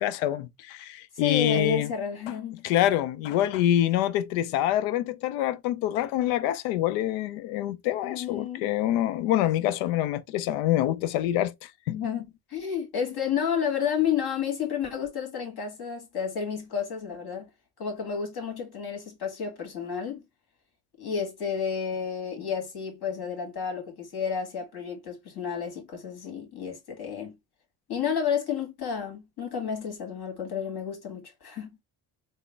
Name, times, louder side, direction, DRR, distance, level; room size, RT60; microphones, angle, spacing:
voice 1, 0.0-1.9 2.6-12.0, left 12 dB, 75° left, 0.6 m, -26 dB
voice 2, 1.2-2.7 8.0-8.7 11.9-17.5 17.8-20.2 21.0-27.4 27.9-31.8, left 7 dB, 50° left, 1.9 m, -31 dB
3.6 x 2.1 x 3.2 m
hypercardioid pair, 65°, 47 cm